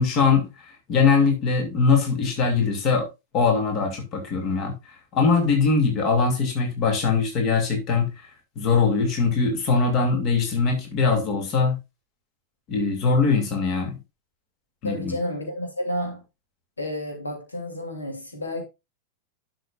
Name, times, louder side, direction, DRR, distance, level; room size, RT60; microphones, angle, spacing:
voice 1, 0.0-3.1 3.3-4.7 5.1-8.1 8.6-11.8 12.7-14.0 14.8-15.2, left 4 dB, 35° left, 2.6 m, -21 dB
voice 2, 14.8-16.2 16.8-18.6, left 1 dB, 75° left, 3.1 m, -30 dB
12.0 x 6.6 x 2.5 m
figure-of-eight pair, 90°, 0 cm